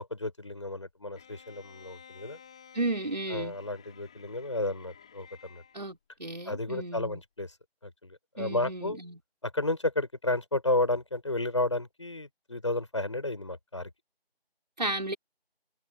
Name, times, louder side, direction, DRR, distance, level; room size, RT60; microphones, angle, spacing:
voice 1, 0.0-2.4 3.3-5.6 6.4-7.5 7.8-9.0 9.4-13.9, left 2 dB, 30° left, 5.0 m, -32 dB
Bowed string instrument, 1.2-5.8, left 7 dB, 5° left, 5.7 m, -54 dB
voice 2, 2.7-3.6 5.7-7.2 8.4-9.2 14.8-15.2, right 2 dB, 45° right, 5.8 m, -34 dB
figure-of-eight pair, 175°, 31 cm